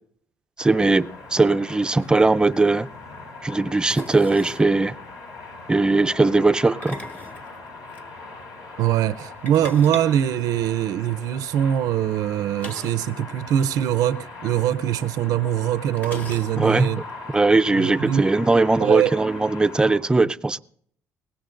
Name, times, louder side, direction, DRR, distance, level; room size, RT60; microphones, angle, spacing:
sound 1, 0.6-20.0, left 3 dB, 65° left, 5.6 m, -40 dB
voice 1, 0.6-2.9 3.4-4.9 5.7-6.9 16.6-16.9 17.3-20.6, right 3 dB, 15° right, 0.5 m, -19 dB
sound 2, 1.6-1.7 1.9-2.1 3.9-4.7 6.6-8.0 9.5-11.1 12.6-13.1 13.4-13.5 13.8-13.9 14.9-15.0 16.0-16.8, left 1 dB, 25° left, 1.5 m, -38 dB
voice 2, 8.8-17.0 17.8-18.3 18.8-19.1, right 11 dB, 75° right, 0.5 m, -22 dB
21.5 x 18.0 x 2.6 m
cardioid pair, 110°, 6 cm